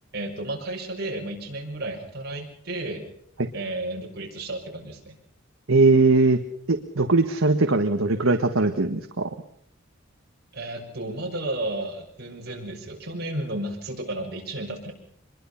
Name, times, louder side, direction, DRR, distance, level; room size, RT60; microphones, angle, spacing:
voice 1, 0.1-3.0 3.5-5.1 10.5-14.9, right 1 dB, 50° right, -1 dB, 6.2 m, -32 dB
voice 2, 5.7-6.4 6.7-9.3, right 3 dB, 80° right, 6 dB, 1.5 m, -20 dB
25.0 x 22.0 x 5.8 m, 0.66 s
head